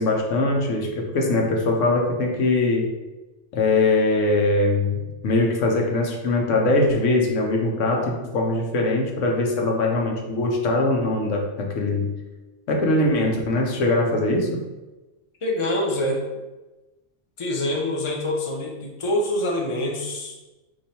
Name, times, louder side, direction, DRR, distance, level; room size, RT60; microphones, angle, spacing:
voice 1, 0.0-2.9 3.5-12.1 12.7-14.6, left 2 dB, 80° left, 1 dB, 1.1 m, -22 dB
voice 2, 15.4-16.2 17.4-20.3, left 1 dB, 30° left, -1 dB, 0.7 m, -25 dB
4.8 x 2.6 x 4.2 m, 1.1 s
omnidirectional pair, 1.3 m